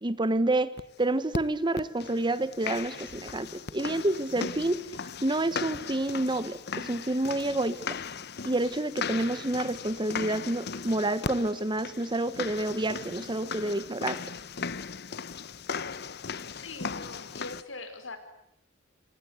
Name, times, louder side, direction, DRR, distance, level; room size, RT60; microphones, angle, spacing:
voice 1, 0.0-0.7 1.0-4.8 5.2-8.0 8.4-14.2, right 2 dB, 25° right, 15 dB, 1.1 m, -28 dB
sound 1, 0.8-0.9 1.3-1.4 1.8-17.6, left 5 dB, 60° left, 1.0 m, -37 dB
voice 2, 16.4-18.2, left 3 dB, 80° left, 8 dB, 5.1 m, -42 dB
26.5 x 26.0 x 8.3 m, 0.76 s
head